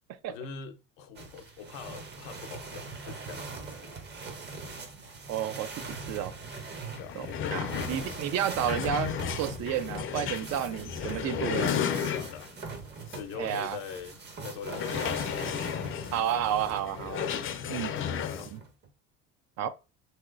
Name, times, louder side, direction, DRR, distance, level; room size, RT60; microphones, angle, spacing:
voice 1, 0.3-3.9 7.0-7.2 10.5-11.4 12.1-12.5 13.1-15.0 17.7-18.5, left 6 dB, 85° left, 0.6 m, -43 dB
sound 1, 1.2-17.5 18.2-18.9, right 4 dB, 35° right, 0.7 m, -42 dB
voice 2, 5.3-6.3 7.2-9.1 9.4-11.8 13.4-13.8 16.1-17.3 17.7-17.9 18.5-18.6 19.6-19.7, right 10 dB, 60° right, 0.5 m, -31 dB
sound 2, 6.5-6.6 6.9-12.6 13.1-13.2 13.6-13.7 14.7-18.5, left 8 dB, 40° left, 0.5 m, -33 dB
3.0 x 2.8 x 2.4 m
supercardioid pair, 90°, 30 cm